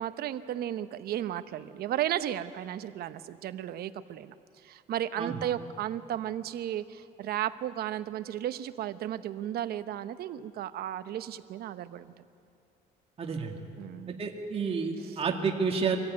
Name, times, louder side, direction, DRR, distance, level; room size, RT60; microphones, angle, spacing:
voice 1, 0.0-4.3 4.6-12.1 13.8-14.2 15.0-15.2, right 11 dB, 65° right, 12 dB, 0.9 m, -34 dB
voice 2, 13.2-13.5 14.2-16.0, right 5 dB, 35° right, 1 dB, 2.2 m, -30 dB
24.0 x 15.0 x 9.5 m, 2.6 s
cardioid pair, 110°, 17 cm